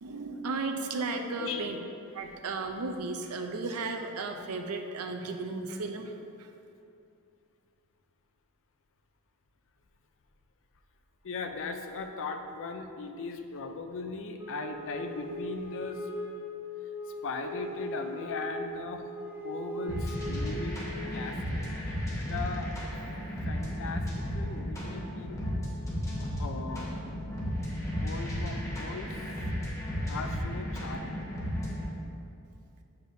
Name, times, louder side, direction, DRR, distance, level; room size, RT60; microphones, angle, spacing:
voice 1, 0.0-1.8 2.1-6.5, right 3 dB, 75° right, 5 dB, 0.6 m, -35 dB
voice 2, 1.4-1.7 11.2-16.1 17.2-19.1 19.4-20.9 21.1-22.7 23.5-25.5 26.2-27.0 28.0-29.2 30.1-31.3, left 4 dB, 60° left, 6 dB, 0.5 m, -38 dB
Wind instrument woodwind instrument, 14.4-21.2, equal, 10° right, 0.6 m, -40 dB
sound 1, 19.9-31.9, equal, 15° left, 1.3 m, -34 dB
8.1 x 6.7 x 2.7 m, 2.6 s
head